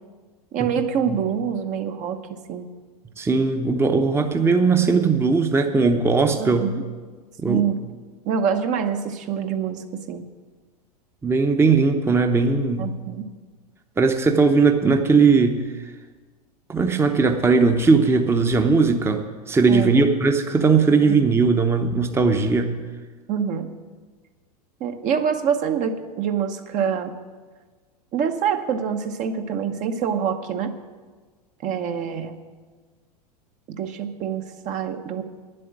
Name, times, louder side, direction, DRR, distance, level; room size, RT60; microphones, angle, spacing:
voice 1, 0.5-2.7 6.4-6.8 7.5-7.8 8.2-10.2 12.8-13.3 19.7-20.1 21.1-21.2 23.3-23.7 24.8-27.2 28.1-30.7 31.6-32.4 33.7-35.2, right 7 dB, 35° right, 6 dB, 0.9 m, -25 dB
voice 2, 3.2-6.7 7.4-7.6 11.2-12.9 14.0-15.6 16.7-19.2 19.5-22.7, right 4 dB, 10° right, 6 dB, 0.8 m, -19 dB
10.0 x 7.7 x 9.2 m, 1.4 s
hypercardioid pair, 90°, 20 cm